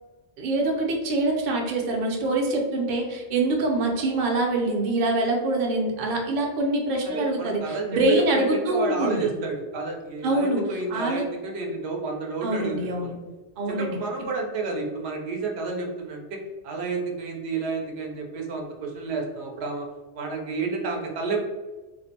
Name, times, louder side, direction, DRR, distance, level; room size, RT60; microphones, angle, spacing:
voice 1, 0.4-9.3 10.2-11.3 12.4-13.1 13.6-14.0, right 2 dB, 55° right, 0 dB, 0.6 m, -25 dB
voice 2, 7.0-13.1 13.7-16.4 16.6-19.9 20.1-21.4, right 4 dB, 85° right, 0 dB, 0.8 m, -30 dB
2.4 x 2.1 x 2.7 m, 1.2 s
omnidirectional pair, 1.1 m